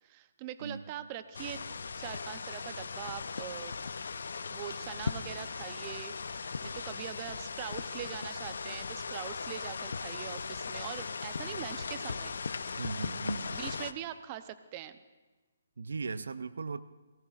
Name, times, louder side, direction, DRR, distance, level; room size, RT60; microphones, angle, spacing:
voice 1, 0.0-3.8 4.5-12.4 13.3-15.0, right 12 dB, 30° right, 12 dB, 0.7 m, -43 dB
voice 2, 0.6-0.9 12.8-13.6 15.8-16.8, right 4 dB, 80° right, 14 dB, 0.6 m, -38 dB
sound 1, 1.3-13.9, left 5 dB, 75° left, 0.7 m, -38 dB
23.0 x 18.0 x 2.5 m, 1.3 s
hypercardioid pair, 150°, 0 cm